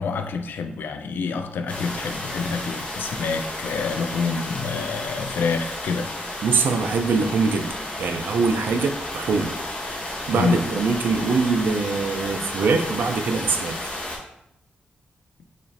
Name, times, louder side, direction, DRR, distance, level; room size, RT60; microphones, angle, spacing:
voice 1, 0.0-6.2 10.3-10.7, left 4 dB, 90° left, 0.3 m, -27 dB
sound 1, 1.7-14.2, left 1 dB, 40° left, 0.8 m, -32 dB
voice 2, 6.4-7.7 8.0-9.5 10.3-13.8, right 4 dB, 85° right, 0.4 m, -23 dB
4.2 x 3.0 x 2.5 m
wide cardioid pair, 175°, 3 cm